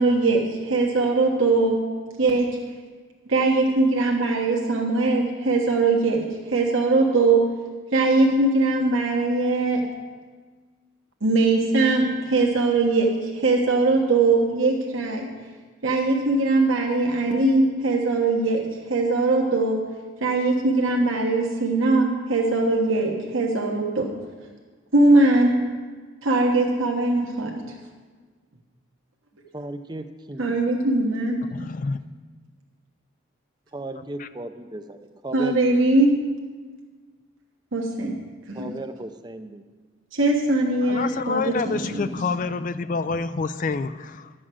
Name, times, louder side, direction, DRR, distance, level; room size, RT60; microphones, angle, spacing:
voice 1, 0.0-1.8 2.2-2.5 3.3-7.4 7.9-9.8 11.2-15.3 15.8-19.8 20.2-24.1 24.9-25.5 26.2-27.6 30.4-31.4 35.3-36.1 37.7-38.1 38.5-38.7 40.1-42.1, right 2 dB, 70° right, 0 dB, 1.3 m, -21 dB
voice 2, 29.5-30.8 33.7-35.0 35.2-35.6 38.5-39.6, right 1 dB, 20° right, 9 dB, 0.5 m, -36 dB
voice 3, 31.5-32.0 33.9-34.3 40.8-44.3, left 4 dB, 40° left, 12 dB, 0.3 m, -28 dB
12.0 x 6.2 x 7.7 m, 1.5 s
head